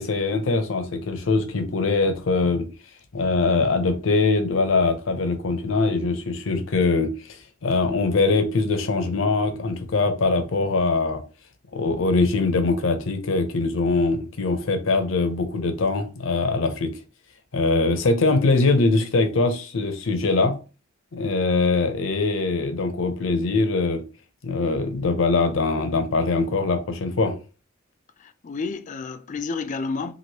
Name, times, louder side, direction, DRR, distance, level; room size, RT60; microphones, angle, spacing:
voice 1, 0.0-2.7 3.1-11.2 11.7-16.9 17.5-20.6 21.1-24.0 24.4-27.3, left 3 dB, 80° left, 0.6 m, -22 dB
voice 2, 28.2-30.1, left 4 dB, 40° left, 0.3 m, -30 dB
3.1 x 2.5 x 2.8 m
head